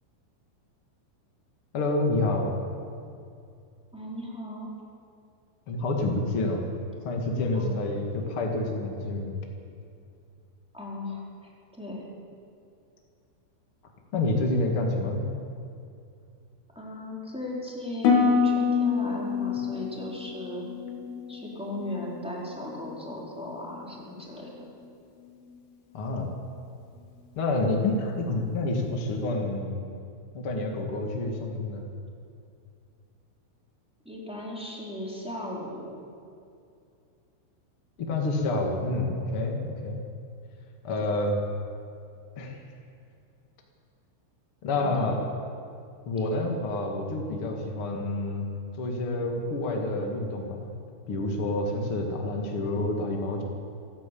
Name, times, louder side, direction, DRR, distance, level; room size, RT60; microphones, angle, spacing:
voice 1, 1.7-2.5 5.7-6.7 7.0-9.3 14.1-15.3 25.9-26.3 27.3-29.8 30.3-31.8 38.0-40.0 40.8-41.4 42.4-42.6 44.6-45.2 46.0-48.4 48.8-50.7 51.1-53.4, left 2 dB, 50° left, 1 dB, 1.6 m, -28 dB
voice 2, 3.9-4.7 7.5-7.8 10.7-11.2 11.7-12.0 16.7-20.6 21.3-24.5 34.0-36.0 44.7-45.1, left 1 dB, ahead, -4 dB, 3.4 m, -37 dB
Harp, 18.0-22.1 22.4-23.0 23.5-23.8, left 5 dB, 75° left, 5.2 m, -27 dB
27.5 x 11.5 x 8.6 m, 2.5 s
omnidirectional pair, 5.9 m